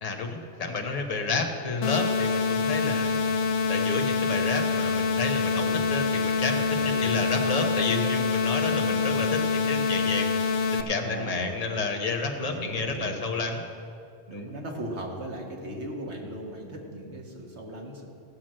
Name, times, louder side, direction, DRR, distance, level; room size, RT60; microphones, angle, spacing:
voice 1, 0.0-3.1 3.7-10.4 10.7-13.7 14.3-14.5, left 3 dB, 35° left, 2 dB, 1.1 m, -30 dB
sound 1, 1.8-10.8, left 4 dB, 80° left, 1.0 m, -26 dB
voice 2, 5.5-5.9 6.8-7.3 8.6-9.2 11.0-11.5 12.4-13.3 14.3-18.1, right 1 dB, 70° right, 0 dB, 1.8 m, -38 dB
14.5 x 5.9 x 7.6 m, 2.6 s
omnidirectional pair, 1.2 m